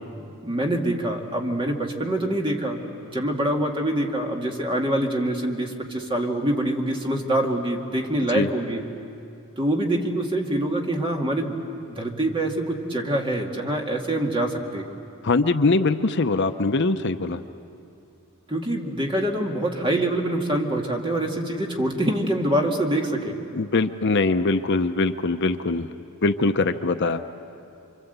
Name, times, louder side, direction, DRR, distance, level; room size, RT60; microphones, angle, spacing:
voice 1, 0.4-8.8 9.6-11.6 11.9-14.9 18.5-23.4, right 1 dB, 25° right, 1 dB, 2.2 m, -25 dB
voice 2, 15.2-17.4 23.5-25.9 26.2-27.2, left 3 dB, 50° left, 9 dB, 0.7 m, -22 dB
29.0 x 25.0 x 8.1 m, 2.6 s
head